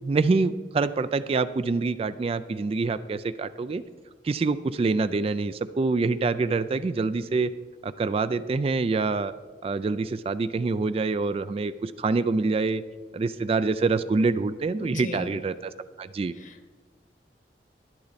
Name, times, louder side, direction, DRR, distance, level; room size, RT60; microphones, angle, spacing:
voice 1, 0.0-3.8 4.2-7.5 7.8-9.3 9.6-12.8 13.1-15.7 16.0-16.3, right 3 dB, 35° right, 13 dB, 0.3 m, -26 dB
voice 2, 14.8-15.4 16.4-16.7, left 1 dB, 45° left, 7 dB, 1.0 m, -37 dB
11.5 x 11.0 x 4.1 m, 1.4 s
head